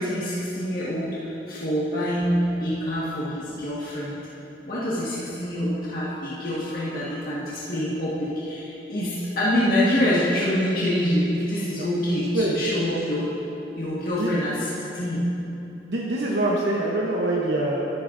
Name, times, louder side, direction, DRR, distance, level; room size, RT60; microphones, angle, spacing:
voice 1, 0.0-4.2 4.6-13.3 13.7-15.3, equal, 55° left, -9 dB, 1.7 m, -26 dB
voice 2, 15.7-17.9, right 1 dB, 75° right, -4 dB, 1.0 m, -24 dB
13.0 x 12.5 x 2.6 m, 3.0 s
head